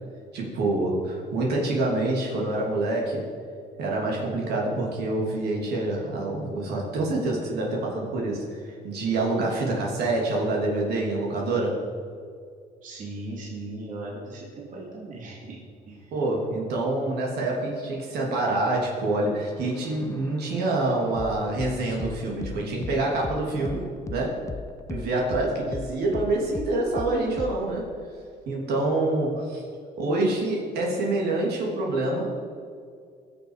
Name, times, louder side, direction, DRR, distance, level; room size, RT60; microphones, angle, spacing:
voice 1, 0.3-3.2 3.8-11.8 16.1-24.4 24.9-27.9 28.5-29.6 30.0-32.3, right 2 dB, 75° right, -2 dB, 3.1 m, -26 dB
voice 2, 12.8-15.6 15.9-16.1, right 2 dB, 50° right, -3 dB, 2.6 m, -38 dB
sound 1, 19.4-27.8, left 4 dB, 20° left, 0.6 m, -39 dB
19.5 x 6.8 x 5.0 m, 2.2 s
cardioid pair, 110°, 17 cm